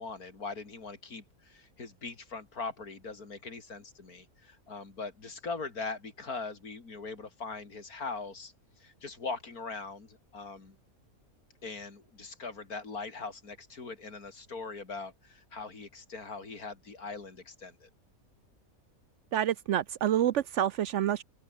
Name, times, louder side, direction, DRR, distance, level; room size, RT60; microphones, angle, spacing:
voice 1, 0.0-10.8 11.6-17.9, left 4 dB, 85° left, 3.7 m, -41 dB
voice 2, 19.3-21.2, right 11 dB, 65° right, 0.8 m, -28 dB
open air
omnidirectional pair, 1.5 m